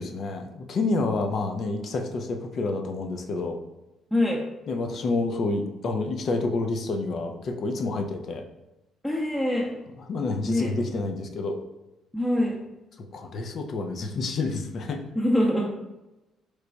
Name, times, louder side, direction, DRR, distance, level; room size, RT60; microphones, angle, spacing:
voice 1, 0.0-3.6 4.7-8.4 10.1-11.6 13.0-15.0, left 3 dB, 55° left, 5 dB, 0.5 m, -29 dB
voice 2, 4.1-4.4 9.0-9.7 10.5-10.7 12.1-12.6 15.2-15.8, left 1 dB, 10° left, -3 dB, 0.6 m, -24 dB
3.1 x 2.2 x 3.9 m, 0.97 s
supercardioid pair, 60°, 0 cm